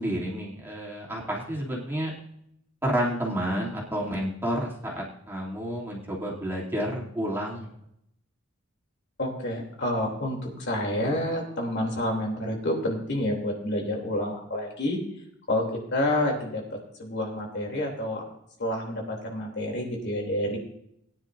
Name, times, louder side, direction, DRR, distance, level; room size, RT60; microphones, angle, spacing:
voice 1, 0.0-2.1 2.8-7.7, equal, 10° right, -4 dB, 2.8 m, -30 dB
voice 2, 9.2-15.0 15.5-18.2 18.6-20.6, left 1 dB, 60° left, 0 dB, 3.0 m, -29 dB
20.0 x 10.0 x 2.6 m, 0.74 s
head